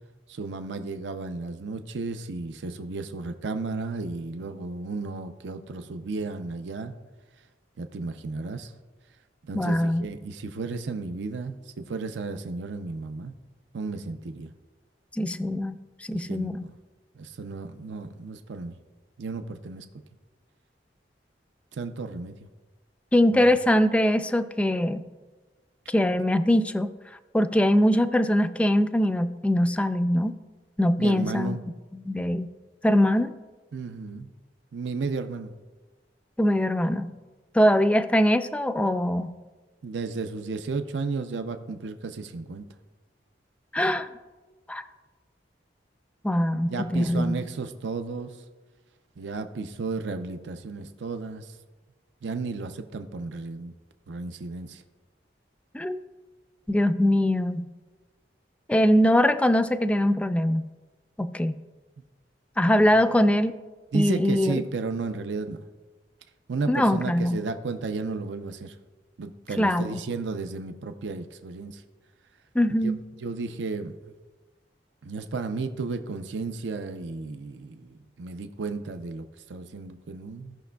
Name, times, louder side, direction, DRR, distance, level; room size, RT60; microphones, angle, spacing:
voice 1, 0.3-7.0 7.8-8.7 9.4-13.3 13.7-14.5 16.1-16.7 17.2-18.8 19.2-19.9 21.7-22.3 23.3-23.4 31.0-31.6 33.7-34.3 34.7-35.5 39.8-42.7 46.5-48.4 49.2-51.6 52.2-53.7 54.1-54.8 62.6-62.9 63.9-65.6 66.5-68.8 69.2-71.8 72.8-72.9 73.2-74.1 75.0-80.6, right 3 dB, 85° right, 8 dB, 0.5 m, -33 dB
voice 2, 9.5-10.1 15.1-15.8 16.1-16.6 23.1-25.0 25.9-26.9 27.3-30.4 30.8-31.6 31.9-32.5 32.8-33.3 36.4-37.1 37.5-39.3 43.7-44.1 44.7-44.8 46.2-47.3 55.7-56.0 56.7-57.6 58.7-60.6 61.2-61.6 62.6-63.5 63.9-64.6 66.7-67.4 69.6-70.0 72.6-73.0, left 1 dB, 5° left, 9 dB, 0.3 m, -22 dB
16.5 x 5.8 x 2.3 m, 1.3 s
head